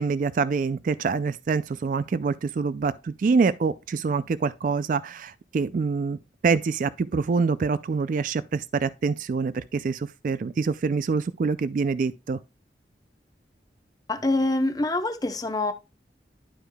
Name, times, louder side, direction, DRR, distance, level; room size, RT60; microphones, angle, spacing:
voice 1, 0.0-6.2 6.4-12.4, right 4 dB, 50° right, 0.3 m, -25 dB
voice 2, 14.1-15.7, left 2 dB, 20° left, 0.7 m, -25 dB
11.0 x 4.9 x 2.2 m
head